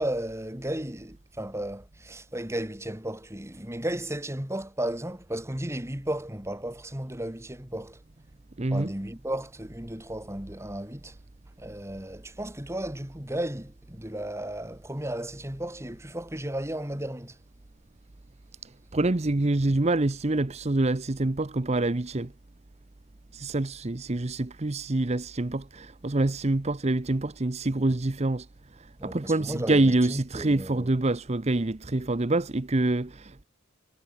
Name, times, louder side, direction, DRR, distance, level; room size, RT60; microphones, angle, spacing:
voice 1, 0.0-8.0 8.6-11.2 11.6-17.4 29.0-30.9, right 1 dB, 15° right, 2.5 m, -34 dB
voice 2, 8.6-8.9 18.6-22.3 23.3-28.5 28.7-33.4, right 2 dB, 30° right, 0.8 m, -26 dB
head